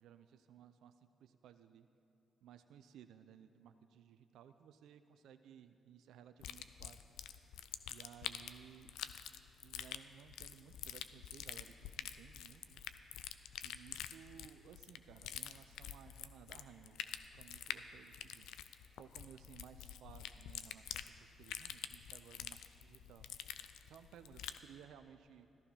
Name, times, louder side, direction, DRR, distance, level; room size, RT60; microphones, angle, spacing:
voice 1, 0.0-1.9 2.4-7.1 7.9-8.9 9.6-12.8 13.6-17.0 17.3-18.5 19.0-23.3 23.8-25.5, right 9 dB, 75° right, 10 dB, 0.5 m, -59 dB
sound 1, 6.4-24.7, left 10 dB, 80° left, 0.5 m, -47 dB
14.5 x 13.5 x 5.6 m, 2.7 s
hypercardioid pair, 50°, 0 cm